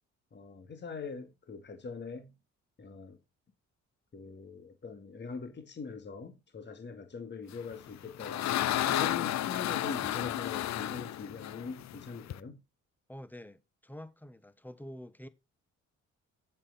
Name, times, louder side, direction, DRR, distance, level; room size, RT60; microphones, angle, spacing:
voice 1, 0.3-2.3 2.8-3.2 4.1-12.6, left 4 dB, 35° left, 2.2 m, -42 dB
sound 1, 7.7-12.4, left 13 dB, 65° left, 0.6 m, -32 dB
voice 2, 13.1-15.3, equal, 5° left, 1.1 m, -47 dB
7.8 x 7.6 x 4.1 m
cardioid pair, 90°, 30 cm